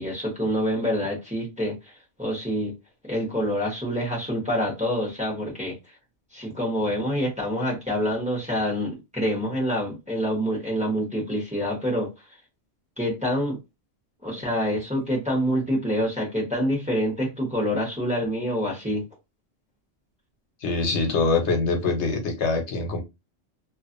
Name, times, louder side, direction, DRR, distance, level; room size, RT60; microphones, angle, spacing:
voice 1, 0.0-1.9 2.2-2.7 3.0-5.8 6.3-12.1 13.0-13.6 14.2-19.0, equal, 5° right, 0.9 m, -26 dB
voice 2, 20.6-23.0, left 3 dB, 90° left, 1.1 m, -24 dB
2.4 x 2.4 x 2.5 m
omnidirectional pair, 1.1 m